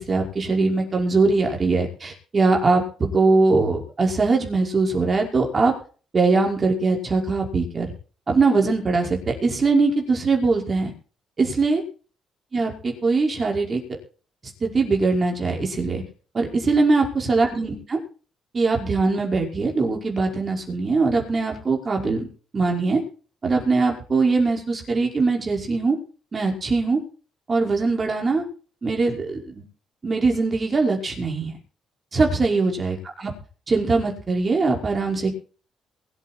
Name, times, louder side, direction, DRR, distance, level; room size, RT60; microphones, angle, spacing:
voice 1, 0.0-5.7 6.1-7.9 8.3-10.9 11.4-11.8 12.5-14.0 14.6-16.0 16.3-18.0 18.5-22.3 22.5-23.0 23.4-26.0 26.3-27.0 27.5-28.4 28.8-29.6 30.0-31.5 32.1-33.3 33.7-35.3, right 3 dB, 35° right, 1 dB, 5.3 m, -21 dB
22.5 x 8.6 x 4.5 m, 0.39 s
cardioid pair, 90°, 0 cm